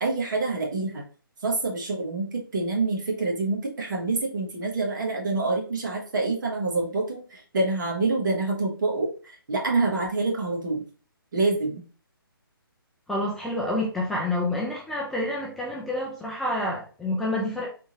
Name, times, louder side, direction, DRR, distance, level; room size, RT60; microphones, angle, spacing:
voice 1, 0.0-1.0 1.4-10.8 11.3-11.8, right 3 dB, 55° right, -1 dB, 1.3 m, -26 dB
voice 2, 13.1-17.7, left 1 dB, ahead, -5 dB, 0.4 m, -28 dB
3.6 x 2.5 x 2.9 m, 0.38 s
figure-of-eight pair, 140°, 12 cm